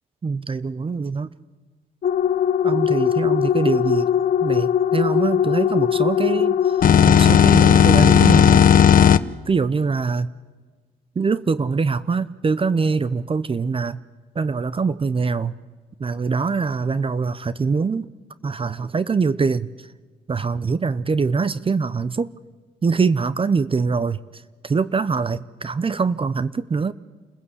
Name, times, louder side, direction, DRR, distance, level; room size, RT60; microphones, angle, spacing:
voice 1, 0.2-1.3 2.6-4.1 4.4-6.5 7.0-8.6 9.5-10.3 11.2-14.0 14.4-15.5 16.0-18.1 18.4-19.7 20.3-22.3 22.8-24.2 24.6-26.9, right 4 dB, 30° right, 17 dB, 0.8 m, -23 dB
sound 1, 2.0-9.2, left 8 dB, 55° left, 0.8 m, -16 dB
28.5 x 15.5 x 8.3 m, 1.4 s
supercardioid pair, 65°, 18 cm